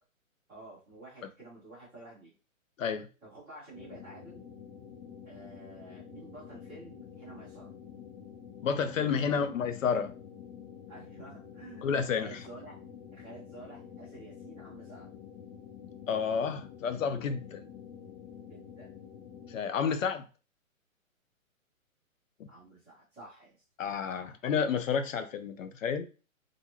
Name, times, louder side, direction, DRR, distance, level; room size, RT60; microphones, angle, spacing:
voice 1, 0.5-2.3 3.2-4.4 5.2-7.7 9.2-9.6 10.9-12.8 13.1-15.1 18.5-19.0 22.5-23.6 24.1-24.4, right 2 dB, 5° right, 0.5 m, -50 dB
sound 1, 3.7-19.6, left 8 dB, 45° left, 1.0 m, -48 dB
voice 2, 8.6-10.1 11.8-12.4 16.1-17.6 19.5-20.2 23.8-26.1, left 6 dB, 70° left, 0.6 m, -30 dB
2.6 x 2.3 x 2.9 m
hypercardioid pair, 160°, 41 cm